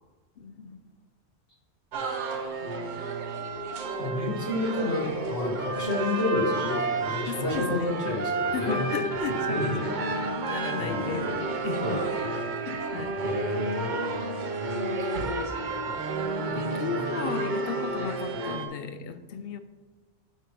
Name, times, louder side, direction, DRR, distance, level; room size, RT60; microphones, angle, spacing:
voice 1, 0.4-0.8 7.3-8.0 8.5-12.0 12.7-13.2 16.4-19.6, left 6 dB, 65° left, 10 dB, 0.7 m, -35 dB
sound 1, 1.9-18.7, right 3 dB, 50° right, 0.7 m, -31 dB
voice 2, 4.0-8.8 9.3-9.9 10.8-11.3 11.8-12.1 13.2-14.0 15.0-16.0 16.5-17.4, left 2 dB, 80° left, -4 dB, 2.3 m, -31 dB
11.5 x 4.4 x 3.4 m, 1.3 s
omnidirectional pair, 1.1 m